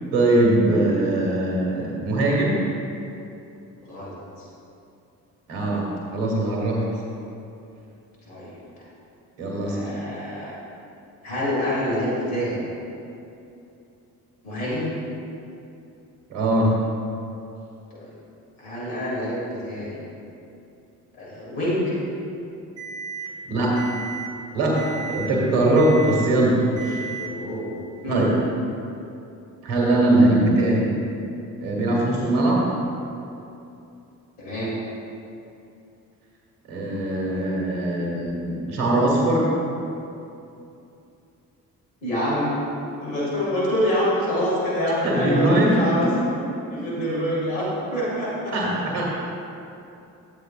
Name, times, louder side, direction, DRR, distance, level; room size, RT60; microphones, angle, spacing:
voice 1, 0.1-2.6 5.5-6.8 9.4-9.8 16.3-16.8 23.5-23.8 24.5-27.0 28.1-28.3 29.6-30.9 31.6-32.7 36.7-39.5 45.0-46.1 48.5-49.1, right 1 dB, 80° right, -2 dB, 1.6 m, -21 dB
voice 2, 3.8-4.4 8.3-8.5 9.7-10.5 11.2-12.6 14.4-14.9 17.9-18.1 18.6-20.0 21.1-21.9 27.1-27.8 28.0-28.2 34.4-34.7 42.0-42.5 43.0-46.3 46.7-48.5, equal, 85° left, -7 dB, 2.0 m, -26 dB
Alarm, 22.8-23.3 23.8-24.3 24.8-25.3 25.8-26.3 26.8-27.3, right 6 dB, 10° right, 1.8 m, -34 dB
12.5 x 8.3 x 2.4 m, 2.7 s
hypercardioid pair, 40°, 43 cm